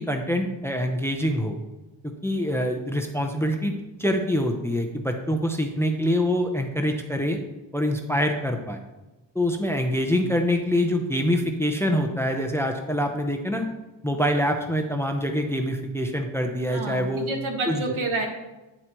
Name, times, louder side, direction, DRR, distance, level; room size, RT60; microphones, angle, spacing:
voice 1, 0.0-1.6 2.0-3.7 4.0-7.4 7.7-8.8 9.3-13.7 14.0-17.3 17.7-17.9, equal, 5° left, 4 dB, 0.6 m, -25 dB
voice 2, 16.7-18.3, right 2 dB, 80° right, 2 dB, 1.6 m, -29 dB
9.1 x 7.8 x 3.0 m, 1.1 s
wide cardioid pair, 150°, 48 cm